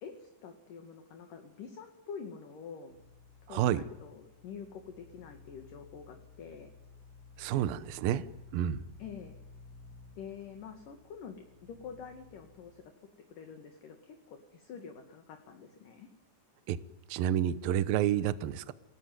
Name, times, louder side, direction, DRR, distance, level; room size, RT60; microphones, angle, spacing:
voice 1, 0.0-2.9 3.4-6.7 9.0-9.4 10.2-12.9 13.3-16.1, left 6 dB, 55° left, 3.3 m, -47 dB
sound 1, 2.9-12.8, left 4 dB, 35° right, 3.0 m, -56 dB
voice 2, 3.5-3.8 7.4-8.2 8.5-8.8 16.7-16.8 17.1-18.7, right 11 dB, 70° right, 2.4 m, -29 dB
28.0 x 20.0 x 9.4 m
omnidirectional pair, 5.1 m